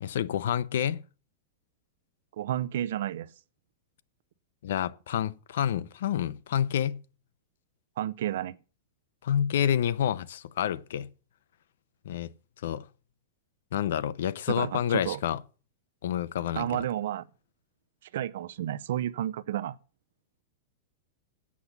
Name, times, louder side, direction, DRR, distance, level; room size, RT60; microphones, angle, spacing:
voice 1, 0.0-1.0 4.6-7.0 9.2-11.1 12.0-12.3 12.6-12.8 13.7-15.4 16.0-16.7, left 9 dB, 75° left, 0.7 m, -28 dB
voice 2, 2.4-3.3 8.0-8.6 14.5-15.2 16.5-17.3 18.1-19.8, right 11 dB, 70° right, 0.6 m, -31 dB
8.5 x 7.2 x 8.1 m
supercardioid pair, 165°, 0 cm